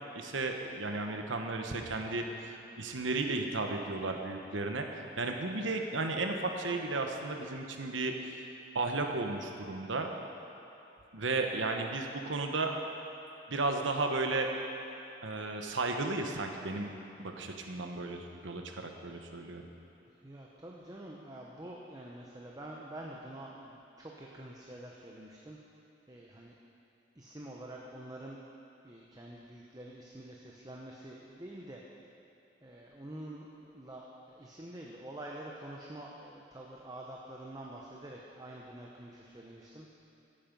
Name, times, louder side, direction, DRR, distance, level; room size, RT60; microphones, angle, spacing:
voice 1, 0.1-2.2 2.8-8.1 8.7-10.1 11.1-12.7 13.5-14.5 15.2-16.9 17.2-19.7, right 3 dB, 70° right, 3 dB, 1.1 m, -34 dB
voice 2, 20.1-25.6 26.1-26.5 27.1-28.4 28.8-31.8 32.6-39.9, right 1 dB, 20° right, -2 dB, 0.8 m, -47 dB
15.0 x 8.8 x 5.4 m, 2.7 s
head